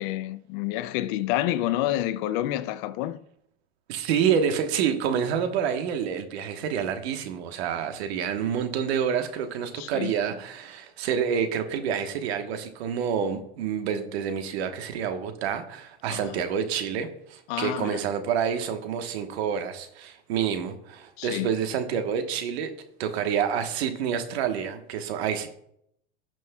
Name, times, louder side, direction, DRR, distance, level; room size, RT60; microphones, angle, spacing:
voice 1, 0.0-3.2 9.7-10.1 16.1-16.4 17.5-18.0 21.2-21.5, left 14 dB, 50° left, 0.5 m, -29 dB
voice 2, 3.9-22.7 23.0-25.5, right 7 dB, 65° right, 1.3 m, -28 dB
15.0 x 6.1 x 2.3 m
supercardioid pair, 125°, 34 cm